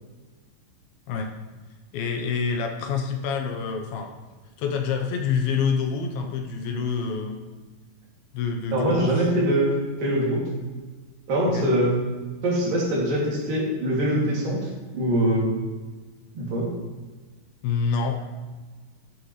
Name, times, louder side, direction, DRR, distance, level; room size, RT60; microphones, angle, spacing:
voice 1, 1.9-4.1 4.6-7.4 8.3-9.3 11.5-11.7 17.6-18.2, left 5 dB, 80° left, 3 dB, 2.7 m, -27 dB
voice 2, 8.7-9.7 10.0-10.5 11.3-12.0 12.4-14.6 14.9-15.5 16.3-16.7, right 1 dB, 65° right, -4 dB, 4.2 m, -23 dB
13.0 x 11.0 x 3.2 m, 1.3 s
omnidirectional pair, 4.3 m